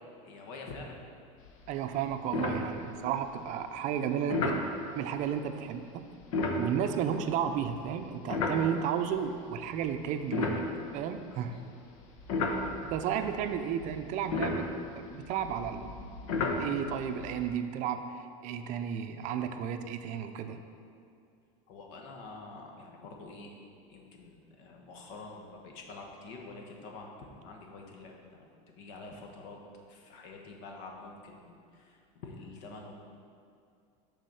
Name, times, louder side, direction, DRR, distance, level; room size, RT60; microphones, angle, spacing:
voice 1, 0.2-1.0 11.4-11.7 21.7-23.6 23.9-29.6 29.9-33.0, left 3 dB, 65° left, 1 dB, 1.2 m, -47 dB
sound 1, 1.5-1.7 2.0-2.1 2.3-3.2 4.3-4.7 6.2-9.1 9.7-11.5 12.0-17.5, left 3 dB, 90° left, 0.9 m, -34 dB
voice 2, 1.7-4.6 5.0-6.1 6.6-10.6 10.9-11.6 12.9-14.7 15.0-15.9 16.6-20.6, right 8 dB, 50° right, 8 dB, 0.5 m, -33 dB
6.7 x 4.1 x 6.3 m, 2.4 s
supercardioid pair, 130°, 17 cm